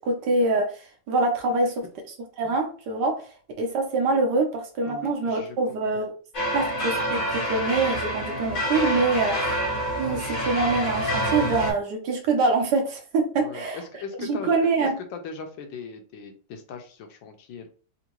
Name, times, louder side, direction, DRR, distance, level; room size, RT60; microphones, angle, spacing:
voice 1, 0.0-1.8 2.4-3.2 3.6-6.1 6.5-9.6 10.0-13.8 14.2-15.0, right 3 dB, 70° right, 4 dB, 1.1 m, -25 dB
voice 2, 4.9-6.1 9.2-9.4 13.4-14.7 15.0-17.7, left 5 dB, 80° left, 5 dB, 1.4 m, -39 dB
sound 1, 6.3-11.7, equal, 45° left, 1.7 m, -27 dB
3.6 x 2.5 x 2.9 m, 0.39 s
omnidirectional pair, 2.1 m